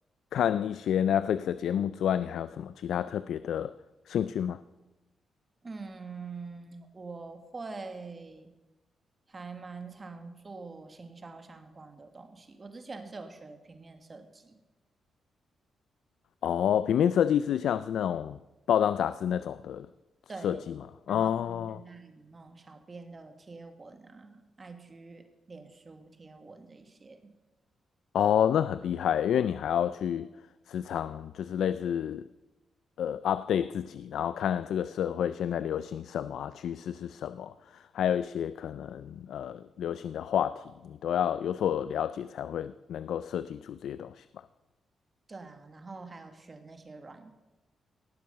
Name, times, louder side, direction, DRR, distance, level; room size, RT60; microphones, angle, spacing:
voice 1, 0.3-3.7 4.1-4.6 16.4-18.4 18.7-19.9 20.4-20.6 21.1-21.8 28.1-30.3 30.7-32.3 33.0-37.5 37.9-44.2, left 9 dB, 80° left, 0.3 m, -29 dB
voice 2, 5.6-8.5 9.3-14.6 20.3-20.6 21.1-27.2 45.3-47.3, right 4 dB, 30° right, 1.6 m, -45 dB
17.5 x 7.7 x 6.7 m
cardioid pair, 105°, 0 cm